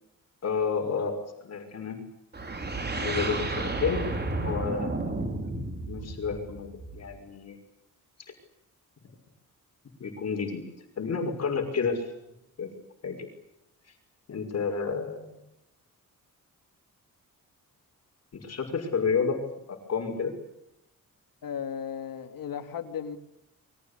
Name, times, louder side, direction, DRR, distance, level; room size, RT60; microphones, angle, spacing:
voice 1, 0.4-2.0 3.0-4.0 4.4-5.1 5.9-7.6 10.0-10.6 11.0-12.1 12.6-12.7 13.0-13.3 14.3-15.4 18.3-19.4 19.7-20.3, left 5 dB, 50° left, 4 dB, 6.0 m, -30 dB
sound 1, 2.3-7.2, right 2 dB, 30° right, 4.9 m, -32 dB
voice 2, 21.4-23.2, left 8 dB, 80° left, 7 dB, 3.2 m, -35 dB
29.0 x 24.0 x 8.5 m, 0.84 s
wide cardioid pair, 170°, 33 cm